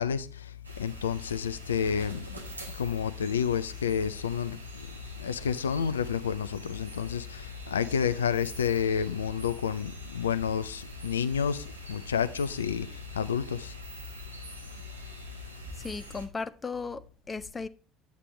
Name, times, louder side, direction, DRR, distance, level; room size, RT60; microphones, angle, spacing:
voice 1, 0.0-2.4 2.7-13.7, left 7 dB, 80° left, 0.4 m, -30 dB
sound 1, 0.6-16.3, equal, 90° right, 1.3 m, -45 dB
voice 2, 15.8-17.7, left 4 dB, 20° left, 0.7 m, -36 dB
9.4 x 8.2 x 3.2 m
figure-of-eight pair, 65°, 0 cm